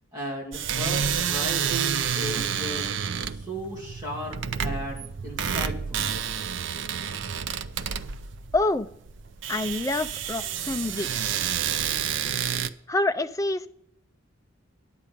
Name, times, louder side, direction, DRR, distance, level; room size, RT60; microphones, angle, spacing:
voice 1, 0.1-4.4 4.6-6.1, right 1 dB, 20° right, -4 dB, 2.5 m, -35 dB
sound 1, 0.5-12.7, right 8 dB, 60° right, 0.5 m, -29 dB
voice 2, 8.5-8.9 9.5-11.1 12.9-13.7, left 2 dB, 15° left, 10 dB, 0.3 m, -26 dB
10.0 x 8.4 x 5.1 m, 0.71 s
head